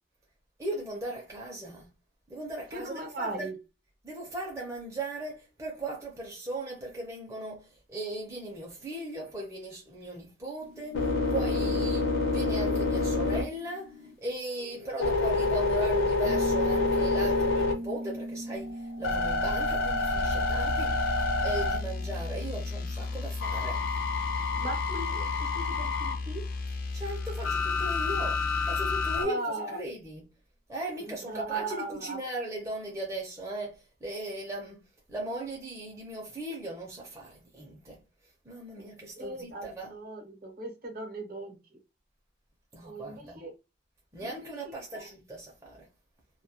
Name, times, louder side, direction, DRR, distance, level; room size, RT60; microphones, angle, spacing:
voice 1, 0.6-1.9 2.3-3.5 4.0-20.9 21.2-23.8 26.9-30.3 30.7-34.8 35.1-38.0 38.5-39.9 42.7-43.4 44.1-45.9, right 1 dB, 15° right, 0.5 m, -38 dB
voice 2, 2.7-3.6 24.6-26.4 29.2-29.8 31.0-32.2 38.8-38.9 39.2-41.6 42.8-43.5 44.9-45.1, right 2 dB, 50° right, 0.7 m, -38 dB
sound 1, 10.6-14.1 14.6-18.1 18.6-22.3 23.4-26.2 27.4-29.2, left 3 dB, 90° left, 0.7 m, -28 dB
Piano, 16.2-24.7, right 1 dB, 85° right, 0.7 m, -40 dB
sound 2, 20.1-29.2, left 3 dB, 50° left, 0.4 m, -35 dB
2.2 x 2.1 x 2.7 m
head